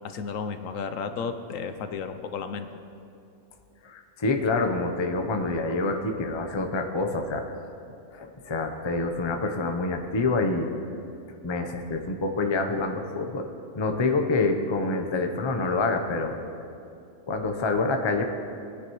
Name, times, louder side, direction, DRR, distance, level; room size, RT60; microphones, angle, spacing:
voice 1, 0.0-2.8, left 5 dB, 75° left, 8 dB, 1.0 m, -33 dB
voice 2, 3.8-7.4 8.1-10.7 11.4-13.5 13.8-16.4 17.3-18.2, left 3 dB, 25° left, 4 dB, 0.6 m, -27 dB
21.0 x 9.8 x 3.1 m, 2.6 s
omnidirectional pair, 1.4 m